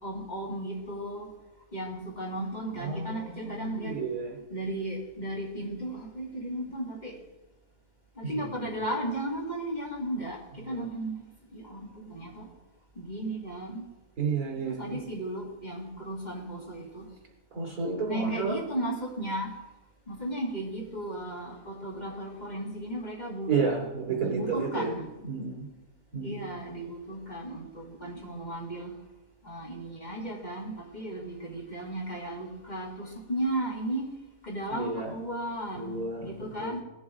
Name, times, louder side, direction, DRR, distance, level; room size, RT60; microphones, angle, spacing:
voice 1, 0.0-1.3 1.7-4.0 4.5-7.2 8.2-12.5 13.0-13.9 14.6-17.0 18.1-19.5 20.1-23.5 24.1-25.1 26.2-28.9 29.4-34.1 34.4-36.8, right 1 dB, 30° left, -2 dB, 2.1 m, -35 dB
voice 2, 2.8-4.3 8.2-8.8 10.6-10.8 14.2-15.0 17.5-18.5 23.5-25.7 26.1-26.4 34.7-35.1 35.8-36.3 36.6-36.8, right 4 dB, 70° right, -5 dB, 3.6 m, -32 dB
19.0 x 7.1 x 3.7 m, 1.0 s
omnidirectional pair, 1.6 m